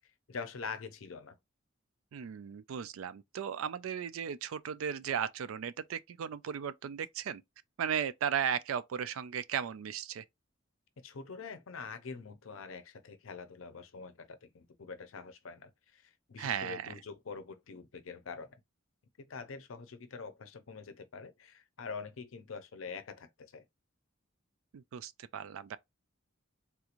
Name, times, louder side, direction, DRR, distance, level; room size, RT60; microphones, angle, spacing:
voice 1, 0.3-1.4 11.0-18.6 19.2-23.6, left 5 dB, 70° left, 0.6 m, -45 dB
voice 2, 2.1-7.4 7.8-10.2 16.4-16.9 24.7-25.8, right 8 dB, 80° right, 0.4 m, -36 dB
3.5 x 2.9 x 2.5 m
head